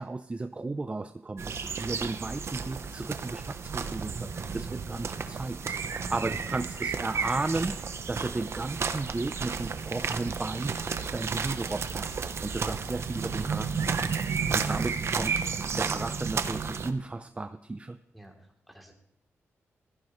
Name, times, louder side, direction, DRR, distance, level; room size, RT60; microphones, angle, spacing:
voice 1, 0.0-5.8 6.1-14.2 14.5-18.0, right 3 dB, 25° right, 10 dB, 0.6 m, -34 dB
sound 1, 1.4-16.9, right 5 dB, 60° right, 0.9 m, -32 dB
voice 2, 5.9-6.5 14.3-14.7 18.1-18.9, right 1 dB, ahead, 1 dB, 3.2 m, -47 dB
16.0 x 14.5 x 3.2 m, 0.78 s
cardioid pair, 75°, 5 cm